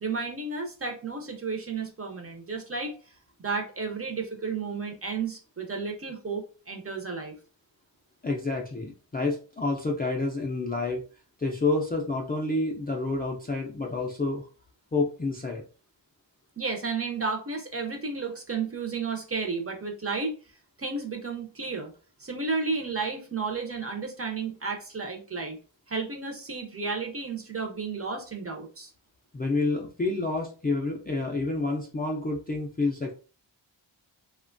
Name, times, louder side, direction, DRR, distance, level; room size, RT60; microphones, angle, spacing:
voice 1, 0.0-2.9 3.4-7.3 16.6-20.3 20.8-21.9 22.2-25.6 25.9-28.9, right 4 dB, 30° right, 2 dB, 0.5 m, -32 dB
voice 2, 8.2-11.0 11.4-14.5 14.9-15.6 29.3-33.1, left 3 dB, 20° left, -1 dB, 0.3 m, -29 dB
2.9 x 2.2 x 2.5 m, 0.36 s
wide cardioid pair, 140°, 47 cm